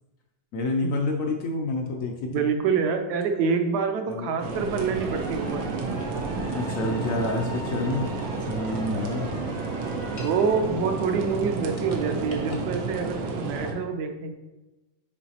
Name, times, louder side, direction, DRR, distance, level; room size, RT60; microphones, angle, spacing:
voice 1, 0.5-2.5 4.1-4.7 6.5-8.1 8.5-9.3, left 2 dB, 80° left, 1 dB, 0.7 m, -29 dB
voice 2, 2.3-6.2 10.1-14.3, right 5 dB, 65° right, 6 dB, 1.1 m, -27 dB
sound 1, 4.4-13.7, right 4 dB, 90° right, 1.5 m, -31 dB
sound 2, 4.8-10.6, left 1 dB, 5° left, 0.5 m, -42 dB
sound 3, 7.6-11.4 11.8-12.7, left 1 dB, 55° left, 0.3 m, -47 dB
7.1 x 4.6 x 2.8 m, 1.1 s
omnidirectional pair, 2.1 m